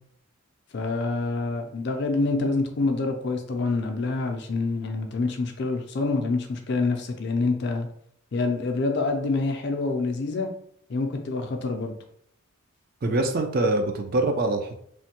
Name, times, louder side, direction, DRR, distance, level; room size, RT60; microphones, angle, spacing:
voice 1, 0.7-7.9 8.3-10.5 10.9-11.9, left 3 dB, 50° left, 4 dB, 0.4 m, -26 dB
voice 2, 13.0-14.7, right 2 dB, 40° right, 4 dB, 0.3 m, -24 dB
3.1 x 2.1 x 2.9 m, 0.67 s
head